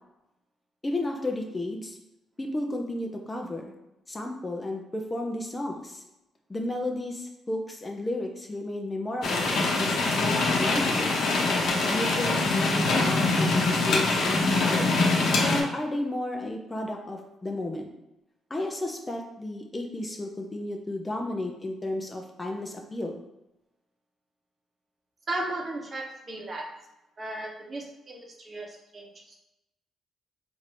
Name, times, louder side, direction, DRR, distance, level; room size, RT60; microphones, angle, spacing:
voice 1, 0.8-2.0 2.4-3.7 4.1-6.0 6.5-11.2 11.8-14.9 15.4-17.9 18.5-23.2, left 1 dB, 20° left, 1 dB, 0.5 m, -33 dB
sound 1, 9.2-15.6, left 3 dB, 65° left, 0.8 m, -24 dB
voice 2, 25.3-26.7 27.2-29.4, right 2 dB, 35° right, 0 dB, 0.9 m, -36 dB
3.2 x 2.6 x 4.3 m, 0.93 s
cardioid pair, 90°, 0 cm